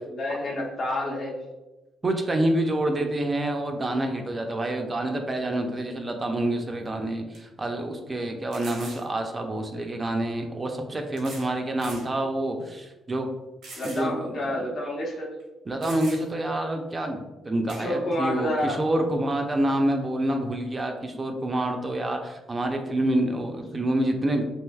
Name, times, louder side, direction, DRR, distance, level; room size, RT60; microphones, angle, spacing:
voice 1, 0.1-1.4 13.8-15.3 17.8-18.8, left 1 dB, 50° left, -2 dB, 0.8 m, -29 dB
voice 2, 2.0-13.3 13.8-14.4 15.7-24.4, right 1 dB, 30° right, 4 dB, 0.4 m, -27 dB
sound 1, 6.7-6.8 7.3-7.4 8.5-9.1 10.2-10.3 11.2-11.5 11.8-12.1 12.6-12.7 13.6-14.1 14.4-14.5 15.4-15.5 15.8-16.4 17.7-17.9, right 3 dB, 85° right, 0.9 m, -42 dB
3.2 x 2.6 x 2.2 m, 1.1 s
cardioid pair, 90°, 0 cm